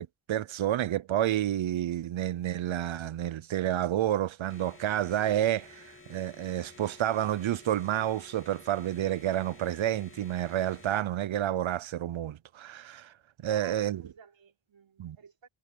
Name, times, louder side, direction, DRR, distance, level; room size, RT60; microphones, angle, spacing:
voice 1, 0.0-13.1 13.4-14.0 15.0-15.2, right 12 dB, 90° right, 0.7 m, -30 dB
sound 1, 4.5-11.0, left 3 dB, 25° left, 2.6 m, -53 dB
voice 2, 13.4-15.5, right 6 dB, 75° right, 3.5 m, -55 dB
wide cardioid pair, 145°, 45 cm